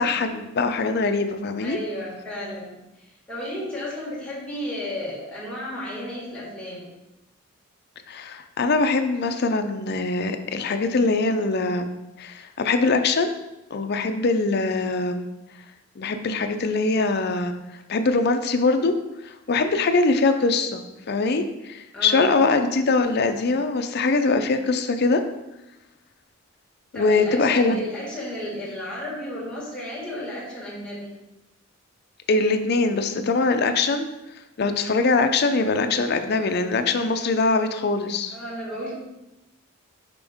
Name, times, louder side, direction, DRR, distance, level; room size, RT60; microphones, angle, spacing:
voice 1, 0.0-1.8 8.1-11.9 12.2-13.3 13.7-15.3 16.0-17.5 17.9-19.0 19.2-25.2 26.9-27.9 32.3-34.1 34.6-38.4, left 3 dB, 50° left, 7 dB, 0.5 m, -22 dB
voice 2, 1.6-2.8 3.3-6.9 21.9-22.3 26.9-31.1 38.3-38.9, left 1 dB, 5° left, -8 dB, 2.0 m, -33 dB
5.2 x 5.2 x 3.5 m, 0.95 s
head